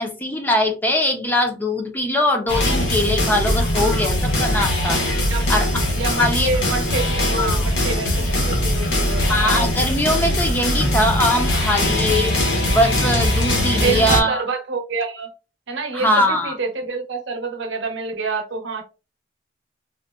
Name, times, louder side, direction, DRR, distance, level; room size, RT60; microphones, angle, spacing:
voice 1, 0.0-5.0 5.5-5.7 6.2-6.5 7.4-7.8 8.1-8.2 9.3-12.3 12.7-14.4 15.9-16.5, left 1 dB, 10° left, 0.4 m, -21 dB
sound 1, 2.5-14.2, left 1 dB, 90° left, 0.9 m, -21 dB
voice 2, 3.7-4.1 5.3-5.5 5.9-9.3 13.8-15.3 15.7-18.8, right 4 dB, 75° right, 0.7 m, -27 dB
3.6 x 2.1 x 2.3 m
head